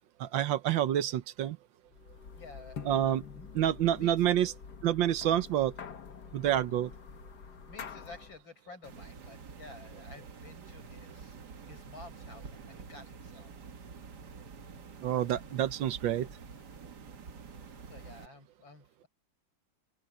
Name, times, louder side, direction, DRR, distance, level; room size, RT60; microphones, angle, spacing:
voice 1, 0.2-1.6 2.9-3.2 3.5-4.5 4.8-5.7 6.3-6.9 15.0-16.3, right 11 dB, 75° right, 1.6 m, -28 dB
sound 1, 1.9-8.4, left 6 dB, 60° left, 1.9 m, -46 dB
voice 2, 2.4-3.5 3.9-4.2 7.7-11.4 11.7-13.5 17.9-19.1, left 3 dB, 85° left, 7.4 m, -52 dB
sound 2, 8.8-18.3, right 5 dB, 60° right, 2.1 m, -48 dB
open air
omnidirectional pair, 2.1 m